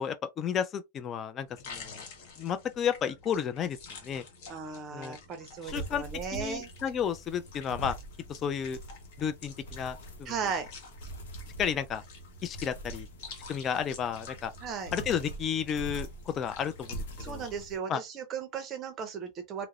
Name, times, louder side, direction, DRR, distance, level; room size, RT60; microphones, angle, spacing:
voice 1, 0.0-2.0 2.4-3.8 4.0-4.3 4.9-5.2 5.6-6.0 6.3-8.0 8.3-8.8 9.2-10.3 11.6-12.0 12.4-13.1 13.5-14.5 14.9-17.4 17.9-18.0, left 8 dB, 25° left, 0.3 m, -32 dB
sound 1, 1.5-17.6, left 4 dB, 60° left, 1.0 m, -50 dB
voice 2, 4.5-6.7 10.3-10.7 14.6-14.9 17.2-19.7, right 6 dB, 30° right, 0.5 m, -36 dB
sound 2, 5.7-17.8, right 1 dB, 90° left, 0.8 m, -44 dB
2.9 x 2.0 x 2.4 m
supercardioid pair, 150°, 0 cm